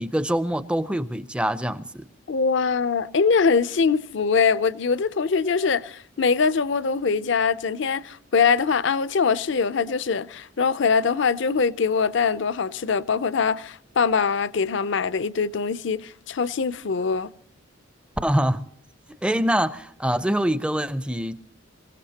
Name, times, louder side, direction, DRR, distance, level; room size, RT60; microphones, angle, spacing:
voice 1, 0.0-2.0 18.2-18.6 19.2-21.3, right 1 dB, 5° right, 0.5 m, -24 dB
voice 2, 2.3-17.3, left 5 dB, 60° left, 0.5 m, -23 dB
26.0 x 16.5 x 2.9 m
head